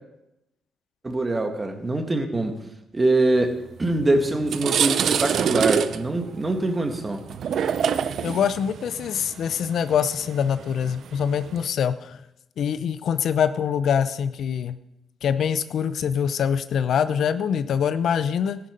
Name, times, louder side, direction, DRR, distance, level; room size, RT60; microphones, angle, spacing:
voice 1, 1.0-2.6 2.9-7.2, right 2 dB, 25° right, 5 dB, 2.0 m, -23 dB
sound 1, 3.8-4.0 4.3-11.6, right 8 dB, 65° right, 0.6 m, -26 dB
voice 2, 8.2-12.2 12.6-14.8 15.2-18.6, left 8 dB, 65° left, 12 dB, 0.6 m, -24 dB
14.5 x 10.5 x 5.3 m, 0.88 s
cardioid pair, 90°, 0 cm